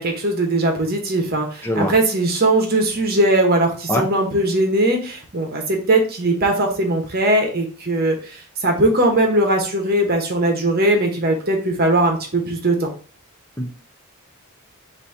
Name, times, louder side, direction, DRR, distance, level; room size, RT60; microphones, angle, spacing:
voice 1, 0.0-12.9, right 1 dB, 45° right, 2 dB, 1.0 m, -19 dB
voice 2, 1.6-1.9 3.9-4.0 13.6-13.7, left 1 dB, 10° left, 2 dB, 0.6 m, -21 dB
4.0 x 2.7 x 4.4 m, 0.39 s
head